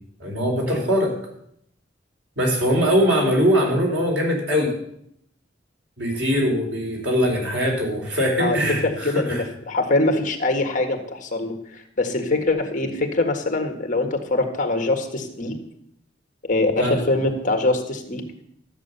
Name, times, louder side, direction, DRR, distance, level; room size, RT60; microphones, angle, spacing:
voice 1, 0.2-1.1 2.4-4.7 6.0-9.4 16.8-17.0, equal, 85° right, 0 dB, 4.2 m, -21 dB
voice 2, 8.4-15.6 16.4-18.3, left 2 dB, 45° left, 5 dB, 1.7 m, -23 dB
13.5 x 8.0 x 6.8 m, 0.73 s
head